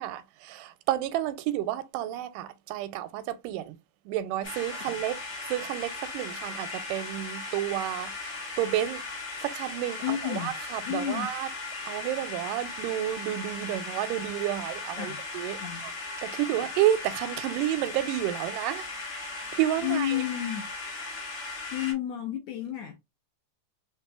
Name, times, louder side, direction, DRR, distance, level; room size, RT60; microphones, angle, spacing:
voice 1, 0.0-3.8 4.1-5.2 5.5-9.0 9.4-11.5 11.9-15.9 16.2-18.9 19.3-20.2, right 13 dB, 90° right, 2.2 m, -30 dB
sound 1, 4.4-21.9, left 3 dB, 45° left, 2.5 m, -38 dB
voice 2, 10.0-10.6 10.8-11.3 15.0-15.2 15.6-15.9 19.8-20.7 21.7-23.0, left 11 dB, 75° left, 1.6 m, -31 dB
6.0 x 3.0 x 2.2 m
omnidirectional pair, 3.7 m